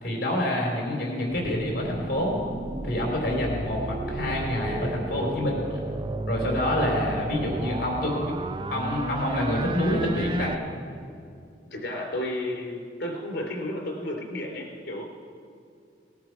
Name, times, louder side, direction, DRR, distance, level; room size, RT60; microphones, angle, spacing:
voice 1, 0.0-2.4 2.8-5.6 6.3-8.3 8.7-10.6, left 1 dB, 55° left, -1 dB, 3.6 m, -27 dB
sound 1, 1.3-10.6, right 2 dB, 25° right, 0.4 m, -33 dB
voice 2, 11.7-15.0, left 1 dB, 70° left, 0 dB, 3.7 m, -32 dB
19.5 x 12.5 x 4.8 m, 2.4 s
head